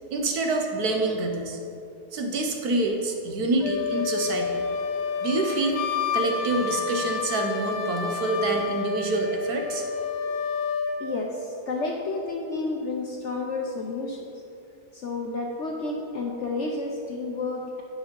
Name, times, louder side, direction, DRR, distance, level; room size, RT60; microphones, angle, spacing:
voice 1, 0.1-1.6 2.1-4.6 5.2-5.8 6.1-9.8, right 2 dB, 65° right, 2 dB, 1.4 m, -26 dB
Wind instrument woodwind instrument, 3.6-11.0, left 6 dB, 85° left, 1.3 m, -29 dB
voice 2, 11.0-14.4 14.9-17.8, left 3 dB, 60° left, 0 dB, 0.8 m, -31 dB
8.1 x 5.9 x 5.2 m, 2.5 s
omnidirectional pair, 1.8 m